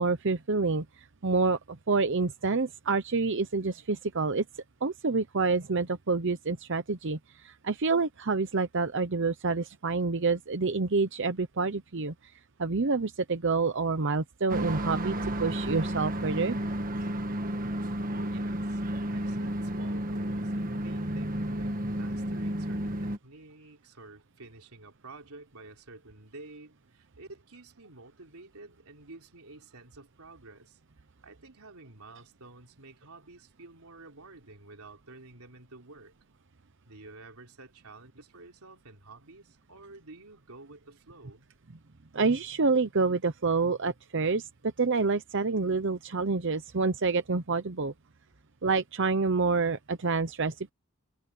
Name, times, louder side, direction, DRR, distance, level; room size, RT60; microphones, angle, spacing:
voice 1, 0.0-4.4 4.8-12.3 12.6-16.6 42.1-47.9 48.6-50.7, right 4 dB, 55° right, 0.8 m, -28 dB
sound 1, 14.5-23.2, right 1 dB, 40° right, 1.5 m, -32 dB
voice 2, 18.1-18.8 19.1-30.8 31.2-36.1 36.8-41.5, right 2 dB, 90° right, 3.4 m, -50 dB
head